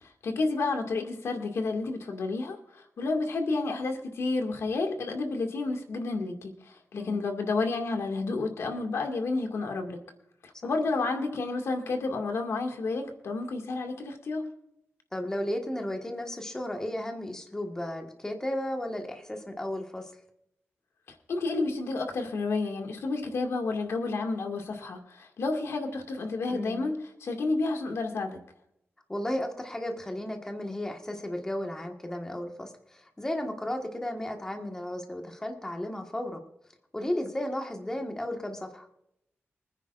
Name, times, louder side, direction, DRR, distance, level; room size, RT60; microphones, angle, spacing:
voice 1, 0.0-10.0 10.4-14.5 21.3-28.4, left 3 dB, 85° left, 4 dB, 2.1 m, -30 dB
voice 2, 6.9-7.3 10.6-10.7 15.1-20.1 26.5-26.9 29.1-36.4 36.9-38.9, left 1 dB, 15° left, 3 dB, 1.5 m, -34 dB
25.5 x 9.8 x 2.5 m, 0.77 s
wide cardioid pair, 155°, 4 cm